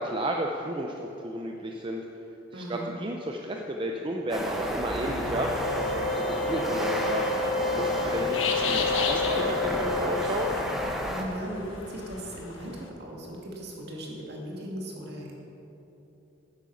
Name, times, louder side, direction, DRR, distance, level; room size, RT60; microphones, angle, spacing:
voice 1, 0.0-2.1 2.5-7.2 7.7-10.5, right 1 dB, 25° right, 1 dB, 0.6 m, -32 dB
voice 2, 2.5-2.9 11.1-15.3, equal, 55° right, -1 dB, 2.2 m, -38 dB
sound 1, 4.3-11.2, equal, ahead, 0.9 m, -32 dB
sound 2, 4.9-12.9, left 5 dB, 75° left, 1.2 m, -37 dB
sound 3, 5.5-10.6, left 4 dB, 45° left, 2.1 m, -30 dB
9.8 x 9.2 x 7.0 m, 3.0 s
head